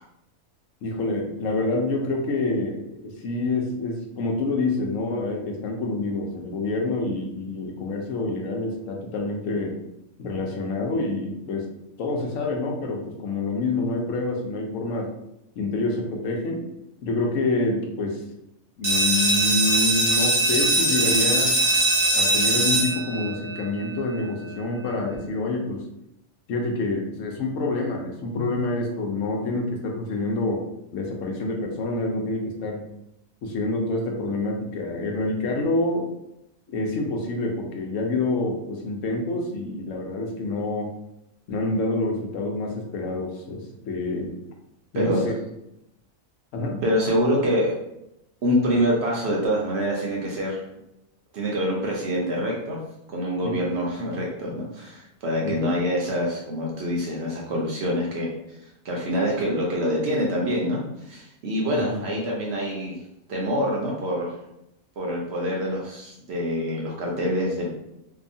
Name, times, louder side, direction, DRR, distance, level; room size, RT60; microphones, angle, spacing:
voice 1, 0.8-9.8 10.2-11.7 12.0-15.1 15.5-16.7 17.0-18.2 18.8-21.6 22.1-25.8 26.5-30.6 30.9-32.8 33.4-36.1 36.7-40.9 41.5-44.3 44.9-45.3 46.5-46.8 53.4-53.5 55.4-55.6 61.7-62.0, left 2 dB, 70° left, 2 dB, 0.9 m, -27 dB
sound 1, 18.8-24.3, right 2 dB, 75° right, 1.2 m, -22 dB
voice 2, 46.8-47.7 48.4-50.6 51.3-52.8 53.1-58.3 58.8-63.0 63.3-64.3 65.0-67.7, equal, 60° right, -2 dB, 0.8 m, -25 dB
2.7 x 2.3 x 2.6 m, 0.84 s
omnidirectional pair, 1.4 m